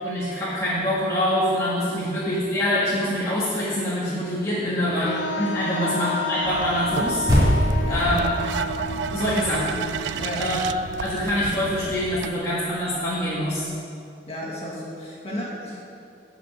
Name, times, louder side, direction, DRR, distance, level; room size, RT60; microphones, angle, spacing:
voice 1, 0.0-5.0 5.4-7.3 7.9-8.3 9.1-9.8 10.4-10.6 11.0-13.7, left 1 dB, 15° left, -10 dB, 1.6 m, -25 dB
voice 2, 4.6-5.1 5.6-6.1 7.8-8.2 10.2-10.5 14.3-15.8, equal, 35° left, -6 dB, 2.4 m, -33 dB
Wind instrument woodwind instrument, 5.0-10.8, left 2 dB, 75° left, 0.5 m, -31 dB
sound 1, 6.5-12.3, right 7 dB, 80° right, 0.3 m, -32 dB
sound 2, 7.3-11.8, equal, 20° right, 2.7 m, -25 dB
11.0 x 5.2 x 7.5 m, 2.5 s
head